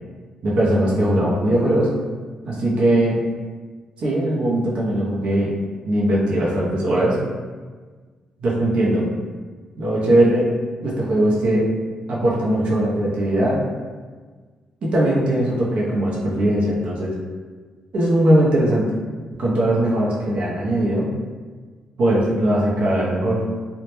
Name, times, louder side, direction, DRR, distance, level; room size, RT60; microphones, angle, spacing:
voice 1, 0.4-1.9 2.4-3.2 4.0-5.5 5.9-7.2 8.4-9.1 9.8-10.5 10.8-11.7 12.1-13.6 14.8-17.1 17.9-18.8 19.4-21.1 22.0-23.4, right 1 dB, 60° right, -5 dB, 0.5 m, -19 dB
2.1 x 2.0 x 2.9 m, 1.5 s
cardioid pair, 115°, 2 cm